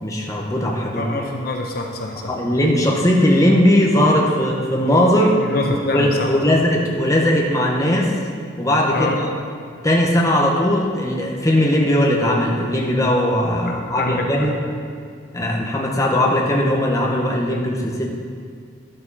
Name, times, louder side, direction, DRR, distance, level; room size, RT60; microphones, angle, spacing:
voice 1, 0.0-1.1 2.3-5.4 5.9-8.1 8.6-9.3 9.8-14.6 15.3-18.1, left 1 dB, 20° left, -1 dB, 1.4 m, -18 dB
voice 2, 0.9-2.3 5.4-6.4 8.9-9.2 13.6-14.5, left 2 dB, 55° left, 1 dB, 1.0 m, -25 dB
12.0 x 11.0 x 4.3 m, 2.1 s
head